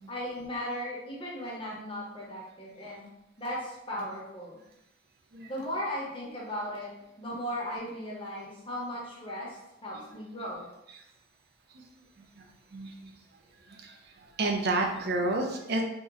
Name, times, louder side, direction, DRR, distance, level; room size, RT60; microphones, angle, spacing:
voice 1, 0.1-3.1 3.4-4.6 5.4-10.7, equal, 25° left, -4 dB, 0.7 m, -37 dB
voice 2, 12.7-13.1 13.7-14.0 14.4-15.8, right 2 dB, 50° right, 2 dB, 0.4 m, -30 dB
2.9 x 2.1 x 3.5 m, 0.88 s
head